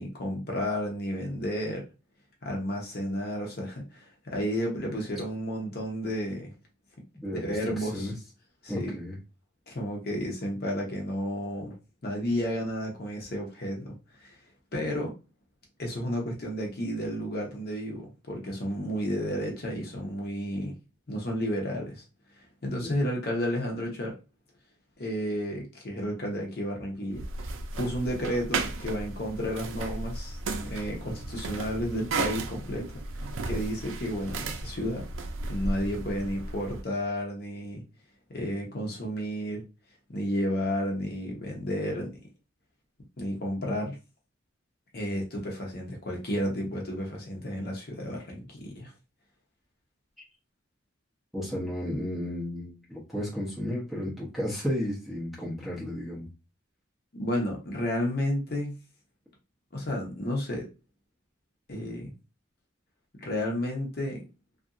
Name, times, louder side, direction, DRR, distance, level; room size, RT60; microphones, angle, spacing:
voice 1, 0.0-1.8 2.4-6.5 7.3-8.1 8.6-8.9 9.7-11.8 12.0-14.4 14.7-15.1 15.8-20.7 21.1-22.0 22.6-24.1 25.0-27.2 27.8-32.9 33.2-35.1 35.5-37.8 38.3-39.6 40.1-42.1 43.2-44.0 44.9-48.9 57.1-58.8 59.7-60.7 61.7-62.1 63.2-64.2, equal, 50° left, 0 dB, 0.8 m, -32 dB
voice 2, 7.2-7.5 7.8-8.1 8.7-9.2 22.8-23.0 51.3-56.3, left 1 dB, ahead, -5 dB, 0.8 m, -33 dB
sound 1, 27.1-36.8, right 3 dB, 85° right, 0.4 m, -35 dB
2.7 x 2.6 x 2.5 m, 0.30 s
head